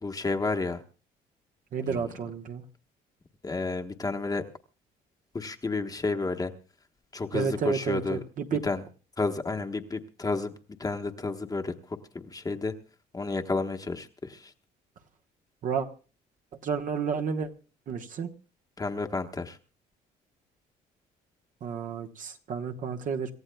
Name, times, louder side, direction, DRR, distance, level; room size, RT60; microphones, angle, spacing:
voice 1, 0.0-0.8 1.9-2.1 3.4-4.5 5.3-6.5 7.1-8.2 8.6-8.8 9.2-10.5 10.8-11.7 12.3-12.7 13.1-14.5 18.8-19.6, left 3 dB, 20° left, 1.2 m, -31 dB
voice 2, 1.7-2.6 7.3-8.6 15.6-15.9 16.6-17.5 17.9-18.3 21.6-23.3, right 6 dB, 50° right, 1.2 m, -31 dB
27.0 x 14.5 x 2.3 m
cardioid pair, 110°, 17 cm